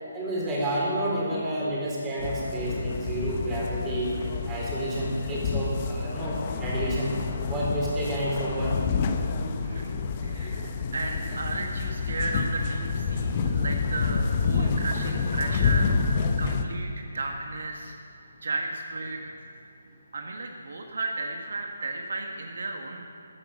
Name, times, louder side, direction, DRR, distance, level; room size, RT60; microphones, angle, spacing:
voice 1, 0.1-4.1 4.5-7.2 7.4-8.7, right 1 dB, 15° right, -5 dB, 3.9 m, -29 dB
sound 1, 2.2-16.6, left 5 dB, 35° left, 0.9 m, -28 dB
voice 2, 9.6-15.9 16.4-18.0 18.4-19.3 20.1-23.0, right 2 dB, 65° right, 3 dB, 1.3 m, -34 dB
14.0 x 9.8 x 7.3 m, 2.6 s
figure-of-eight pair, 155°, 0 cm